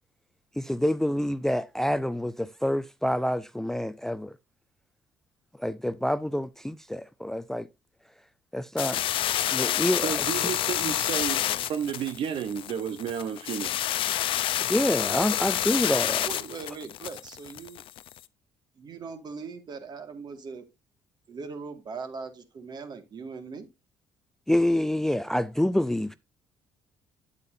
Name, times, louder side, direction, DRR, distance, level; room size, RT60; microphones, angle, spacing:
voice 1, 0.6-4.3 5.6-7.7 8.5-9.0 9.5-10.2 14.6-16.3 24.5-26.2, left 1 dB, 5° left, 0.4 m, -27 dB
sound 1, 8.8-18.2, left 12 dB, 65° left, 0.5 m, -28 dB
voice 2, 10.0-11.4 11.7-13.8, right 8 dB, 65° right, 0.8 m, -31 dB
voice 3, 16.2-17.8 18.8-20.7 21.3-23.7, right 4 dB, 50° right, 1.8 m, -40 dB
8.9 x 8.2 x 2.6 m
supercardioid pair, 80°, 10 cm